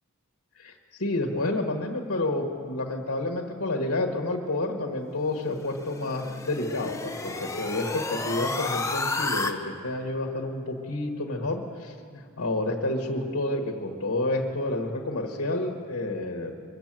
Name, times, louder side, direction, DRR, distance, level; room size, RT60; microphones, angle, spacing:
voice 1, 0.5-16.5, left 2 dB, 65° left, 0 dB, 1.4 m, -29 dB
sound 1, 5.5-9.5, left 3 dB, 15° left, 0.8 m, -31 dB
23.5 x 8.1 x 7.5 m, 2.4 s
head